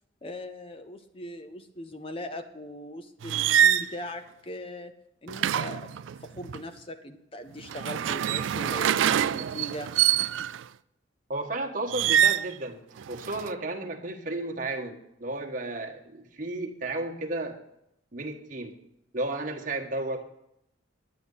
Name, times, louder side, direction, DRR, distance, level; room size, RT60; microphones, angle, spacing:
voice 1, 0.2-4.9 5.2-5.9 6.2-9.9, left 1 dB, 30° left, 8 dB, 0.6 m, -40 dB
sound 1, 3.2-3.9 5.3-6.6 7.6-10.6 11.9-12.5 13.0-13.5, right 10 dB, 75° right, 0.3 m, -25 dB
voice 2, 11.3-12.8 13.1-17.6 18.1-18.7 19.1-20.2, right 2 dB, 40° right, 1 dB, 1.4 m, -33 dB
10.5 x 9.7 x 5.4 m, 0.79 s
head